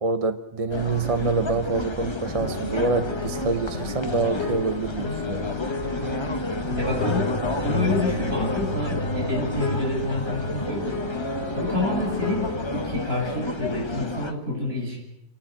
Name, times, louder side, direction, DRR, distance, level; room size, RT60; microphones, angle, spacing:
voice 1, 0.0-5.5, right 4 dB, 35° right, 10 dB, 0.8 m, -26 dB
sound 1, 0.7-14.3, left 2 dB, 25° left, 1.1 m, -31 dB
sound 2, 2.4-12.9, left 2 dB, 60° left, 2.7 m, -31 dB
voice 2, 6.7-7.3 7.6-11.0 11.6-15.0, left 1 dB, 55° right, -3 dB, 8.3 m, -28 dB
28.5 x 11.5 x 8.8 m, 0.86 s
omnidirectional pair, 1.2 m